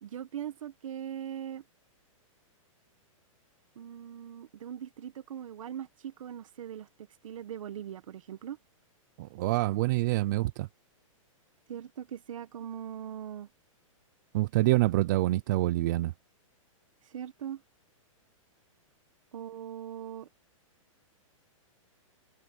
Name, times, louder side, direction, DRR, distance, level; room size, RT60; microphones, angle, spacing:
voice 1, 0.0-1.6 3.7-6.9 7.2-8.6 11.7-13.5 17.1-17.6 19.3-20.3, right 9 dB, 70° right, 1.4 m, -40 dB
voice 2, 9.2-10.7 14.3-16.1, right 18 dB, 35° right, 0.5 m, -26 dB
hypercardioid pair, 170°, 17 cm